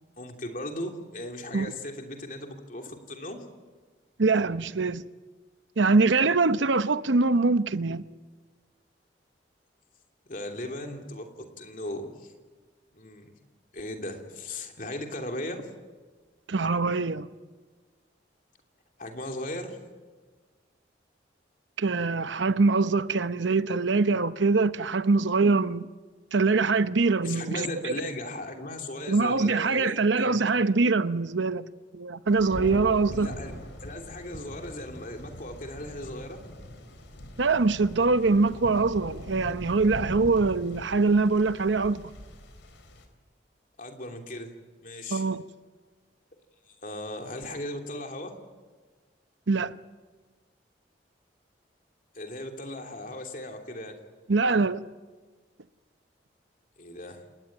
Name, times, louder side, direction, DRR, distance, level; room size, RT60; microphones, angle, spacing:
voice 1, 0.2-3.4 10.3-12.3 12.9-13.3 13.7-15.7 19.0-19.8 27.2-30.4 33.1-33.5 33.8-36.4 43.8-44.5 44.8-45.2 46.7-48.4 52.1-54.0 56.8-57.2, left 1 dB, 45° left, 3.0 m, -37 dB
voice 2, 4.2-5.0 5.8-8.0 16.5-17.3 21.8-25.9 26.3-27.9 29.1-31.7 31.9-33.3 37.4-42.0 45.1-45.4 49.5-49.7 54.3-54.8, right 3 dB, 80° right, 0.8 m, -23 dB
Thunder, 32.3-43.0, equal, 85° left, 3.9 m, -42 dB
28.0 x 19.5 x 8.8 m
head